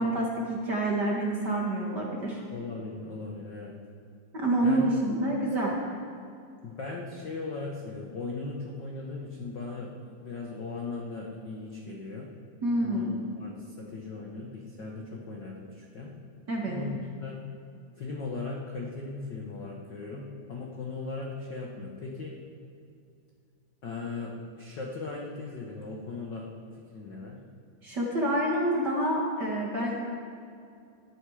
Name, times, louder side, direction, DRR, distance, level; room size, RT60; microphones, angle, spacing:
voice 1, 0.0-2.4 4.3-5.7 12.6-13.2 16.5-16.8 27.8-29.9, right 1 dB, 40° right, -3 dB, 1.7 m, -27 dB
voice 2, 2.5-3.7 4.6-4.9 6.6-12.3 12.8-16.1 16.7-17.4 18.0-22.3 23.8-26.5 26.9-27.4, left 3 dB, 80° left, -1 dB, 1.0 m, -38 dB
17.0 x 11.5 x 4.9 m, 2.5 s
omnidirectional pair, 4.0 m